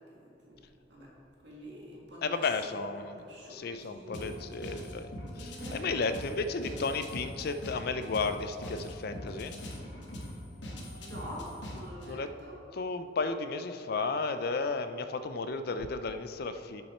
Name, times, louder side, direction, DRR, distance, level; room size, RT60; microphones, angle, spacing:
voice 1, 0.1-0.6 0.9-1.1 1.4-2.8 3.2-4.7 5.4-6.0 10.8-12.6, equal, 70° right, -4 dB, 1.9 m, -46 dB
voice 2, 2.2-3.2 3.5-5.1 5.4-9.6 12.1-12.3 12.7-16.8, left 4 dB, 55° left, 10 dB, 0.4 m, -33 dB
sound 1, 4.1-12.1, left 1 dB, 75° left, 1.2 m, -42 dB
8.0 x 7.2 x 4.3 m, 2.8 s
head